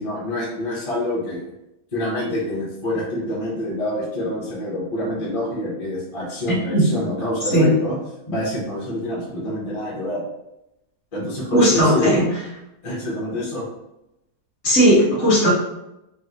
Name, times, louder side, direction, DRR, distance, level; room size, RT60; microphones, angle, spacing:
voice 1, 0.0-1.5 1.9-8.0 8.3-10.2 11.1-12.2 12.8-13.6, left 1 dB, 35° left, -5 dB, 0.5 m, -26 dB
voice 2, 11.5-12.2 14.6-15.5, equal, 50° left, -4 dB, 1.1 m, -16 dB
3.4 x 2.2 x 2.7 m, 0.88 s
omnidirectional pair, 1.7 m